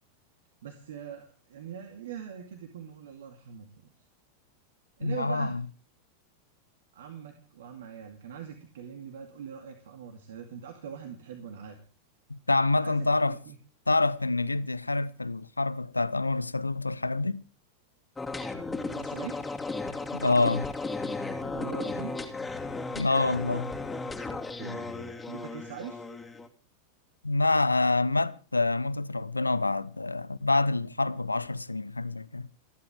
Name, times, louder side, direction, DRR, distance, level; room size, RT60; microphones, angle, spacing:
voice 1, 0.6-3.9 5.0-5.6 6.9-11.8 12.8-13.6 18.7-19.4 21.5-22.1 24.5-25.0 25.3-26.0, right 8 dB, 60° right, 2.3 m, -42 dB
voice 2, 5.0-5.6 12.3-13.4 13.9-17.4 20.1-20.7 23.0-23.8 27.2-32.5, left 3 dB, 80° left, 0.7 m, -27 dB
sound 1, 18.2-26.5, left 3 dB, 10° left, 2.5 m, -35 dB
29.5 x 11.5 x 3.6 m
figure-of-eight pair, 90°, 0 cm